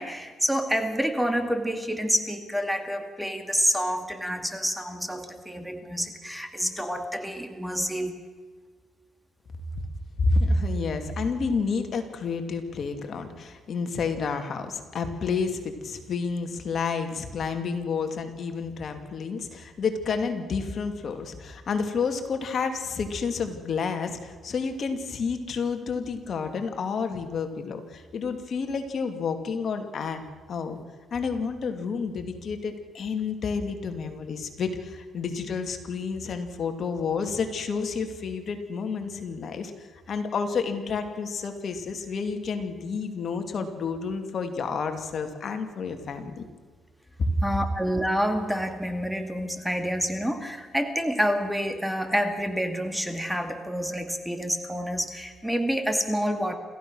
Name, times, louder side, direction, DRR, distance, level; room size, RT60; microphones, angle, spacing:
voice 1, 0.0-8.1 47.4-56.6, equal, ahead, 6 dB, 2.3 m, -28 dB
voice 2, 10.2-30.2 30.5-30.8 31.1-46.4 47.2-47.3, left 4 dB, 55° left, 6 dB, 2.5 m, -30 dB
28.5 x 15.0 x 6.3 m, 1.5 s
cardioid pair, 90°, 0 cm